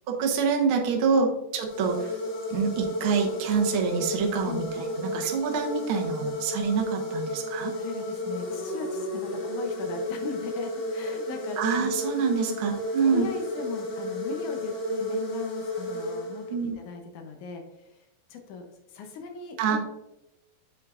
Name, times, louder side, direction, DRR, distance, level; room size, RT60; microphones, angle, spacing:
voice 1, 0.1-2.1 2.5-7.7 11.6-13.3 16.5-16.8 19.6-19.8, right 5 dB, 80° right, 2 dB, 1.2 m, -26 dB
sound 1, 1.6-16.8, left 1 dB, 55° left, 1.4 m, -32 dB
voice 2, 4.4-4.8 7.7-11.6 12.4-12.6 13.0-18.0 18.3-18.7 18.9-19.8, left 5 dB, 75° left, 4 dB, 2.0 m, -38 dB
7.5 x 6.8 x 2.4 m, 0.90 s
omnidirectional pair, 3.9 m